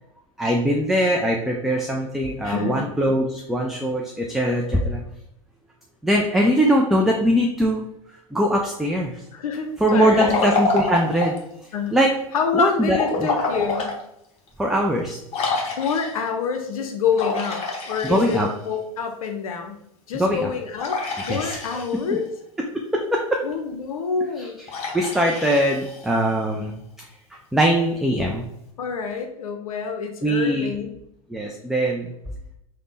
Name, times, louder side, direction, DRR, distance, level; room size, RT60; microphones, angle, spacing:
voice 1, 0.4-5.0 6.0-7.8 8.3-9.2 9.8-11.4 11.9-12.1 12.5-13.5 14.6-15.2 18.0-18.5 20.1-20.5 21.3-22.0 22.7-23.4 24.4-24.7 24.9-26.8 27.3-28.5 30.2-30.7 31.3-32.1, equal, ahead, 0 dB, 0.3 m, -22 dB
voice 2, 2.4-2.9 9.3-10.3 11.7-11.9 12.3-14.0 15.7-18.4 18.7-19.8 20.1-21.0 21.3-22.3 23.4-24.6 28.8-30.9, left 6 dB, 80° left, 5 dB, 0.5 m, -27 dB
Liquid, 9.8-11.5 12.9-14.0 14.5-14.6 15.3-16.3 17.1-18.7 20.8-22.1 24.7-26.3, left 3 dB, 35° left, 0.9 m, -27 dB
3.3 x 2.1 x 3.9 m, 0.80 s
hypercardioid pair, 100°, 18 cm